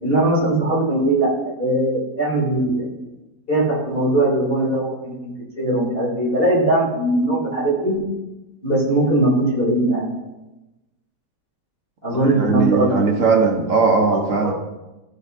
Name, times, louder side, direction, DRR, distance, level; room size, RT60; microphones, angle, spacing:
voice 1, 0.0-2.9 3.5-8.0 8.6-10.1 12.0-13.1 14.1-14.5, right 1 dB, 30° left, -5 dB, 3.5 m, -20 dB
voice 2, 12.1-14.5, right 4 dB, 55° right, 2 dB, 1.4 m, -19 dB
14.5 x 6.4 x 2.7 m, 1.0 s
omnidirectional pair, 1.8 m